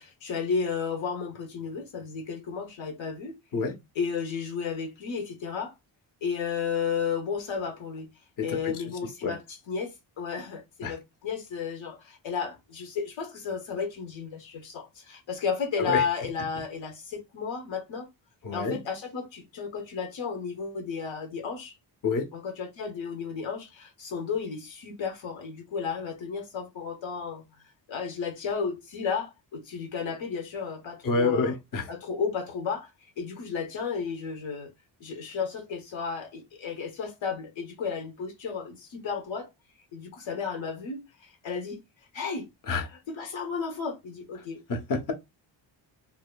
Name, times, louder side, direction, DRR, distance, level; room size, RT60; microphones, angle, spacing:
voice 1, 0.0-3.4 4.0-5.7 6.2-8.1 8.4-18.1 18.5-21.7 22.3-27.4 27.9-31.5 31.9-34.7 35.0-39.5 39.9-41.8 42.1-42.5 43.1-44.6, left 6 dB, 75° left, 1.1 m, -33 dB
voice 2, 8.4-8.7 9.2-9.4 10.8-10.9 15.8-16.0 18.4-18.8 22.0-22.3 31.0-31.9 42.7-42.9 44.7-45.1, left 4 dB, 45° left, 0.8 m, -28 dB
2.7 x 2.6 x 2.2 m
cardioid pair, 95°, 46 cm